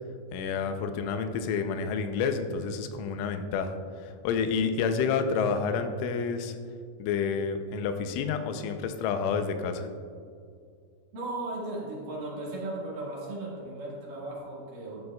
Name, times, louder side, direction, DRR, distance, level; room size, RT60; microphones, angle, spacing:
voice 1, 0.3-3.8 4.2-6.6 7.0-9.9, left 5 dB, 90° left, 7 dB, 3.2 m, -29 dB
voice 2, 11.1-15.0, right 2 dB, 55° right, -4 dB, 2.9 m, -36 dB
14.5 x 9.7 x 2.3 m, 2.3 s
omnidirectional pair, 5.4 m